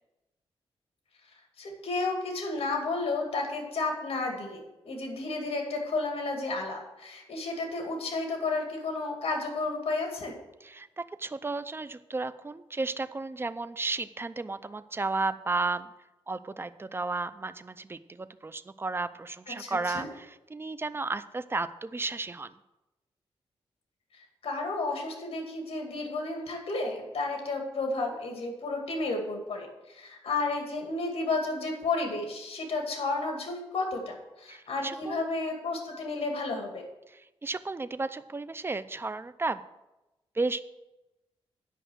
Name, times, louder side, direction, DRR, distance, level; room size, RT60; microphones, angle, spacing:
voice 1, 1.6-4.6 4.8-10.3 19.6-20.1 24.1-36.8, left 3 dB, 70° left, 2 dB, 2.3 m, -32 dB
voice 2, 10.6-15.9 16.3-22.5 34.5-35.2 37.1-39.6 40.3-40.6, right 3 dB, 25° right, 13 dB, 0.5 m, -33 dB
10.0 x 5.5 x 7.9 m, 0.99 s
cardioid pair, 90°, 10 cm